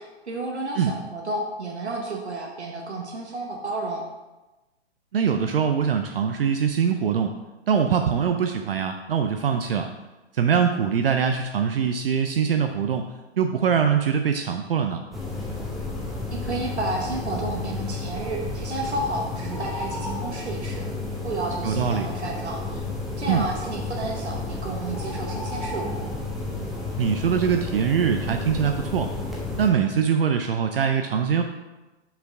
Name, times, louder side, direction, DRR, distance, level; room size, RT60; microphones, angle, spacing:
voice 1, 0.0-4.0 16.3-20.9 21.2-22.8 23.2-26.0, right 2 dB, 80° right, 0 dB, 1.0 m, -31 dB
voice 2, 5.1-7.3 7.7-9.9 10.3-13.1 13.4-15.0 21.6-22.1 23.3-23.5 27.0-29.1 29.6-31.4, right 7 dB, 60° right, 6 dB, 0.5 m, -23 dB
sound 1, 15.1-29.7, left 3 dB, ahead, 0.6 m, -32 dB
5.7 x 4.4 x 4.9 m, 1.1 s
figure-of-eight pair, 120°, 33 cm